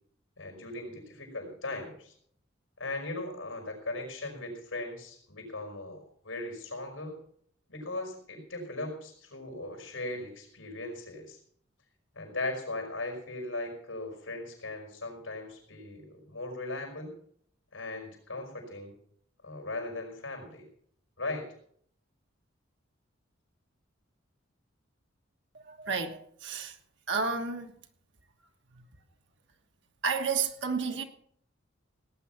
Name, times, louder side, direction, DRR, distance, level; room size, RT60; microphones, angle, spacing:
voice 1, 0.4-2.1 2.8-7.2 7.7-11.4 12.1-17.1 17.7-19.0 19.4-20.7 21.2-21.5, left 2 dB, 85° left, 5.3 m, -38 dB
voice 2, 25.6-26.8 27.1-27.7 28.7-28.8 30.0-31.0, right 5 dB, 60° right, 1.4 m, -31 dB
18.0 x 9.4 x 5.8 m
head